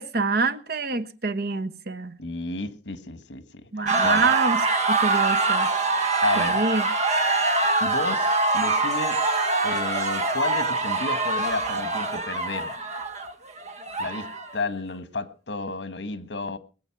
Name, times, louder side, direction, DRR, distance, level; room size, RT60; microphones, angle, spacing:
voice 1, 0.0-2.2 3.7-4.6 4.9-5.7 6.4-6.8, right 4 dB, 60° right, 1.1 m, -26 dB
voice 2, 2.2-4.3 6.2-6.7 7.8-9.2 9.6-12.7 14.0-16.6, left 3 dB, 80° left, 1.6 m, -32 dB
sound 1, 3.9-14.6, right 3 dB, 40° right, 1.4 m, -24 dB
21.5 x 8.1 x 5.9 m
head